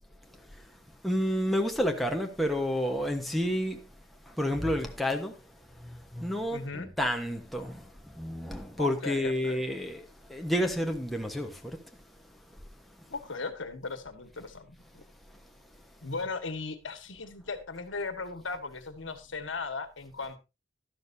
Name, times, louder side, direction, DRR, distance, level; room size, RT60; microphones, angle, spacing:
voice 1, 1.0-3.8 4.3-5.4 5.8-11.8, equal, ahead, 1.2 m, -30 dB
voice 2, 6.5-6.9 8.8-9.7 13.1-15.0 16.0-20.4, left 4 dB, 70° left, 1.6 m, -37 dB
12.5 x 11.5 x 2.7 m
head